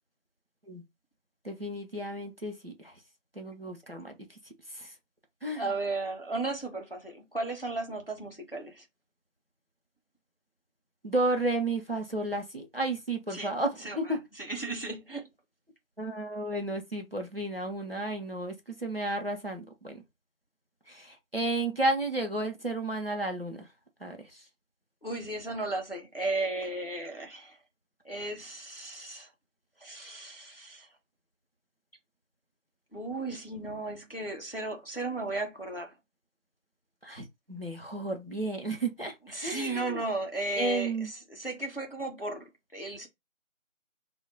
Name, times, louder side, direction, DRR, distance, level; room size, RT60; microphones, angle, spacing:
voice 1, 1.4-2.9 3.4-4.4 4.7-4.9 5.4-5.7 11.0-14.2 16.0-20.0 20.9-23.7 24.0-24.4 37.0-39.1 39.4-40.0 40.6-41.1, right 2 dB, 45° right, 0.6 m, -32 dB
voice 2, 5.6-8.8 13.3-13.5 13.8-15.3 25.0-27.6 28.0-29.3 29.8-30.9 32.9-35.9 39.3-43.1, right 2 dB, 45° left, 0.6 m, -35 dB
2.2 x 2.1 x 3.7 m
figure-of-eight pair, 180°, 40 cm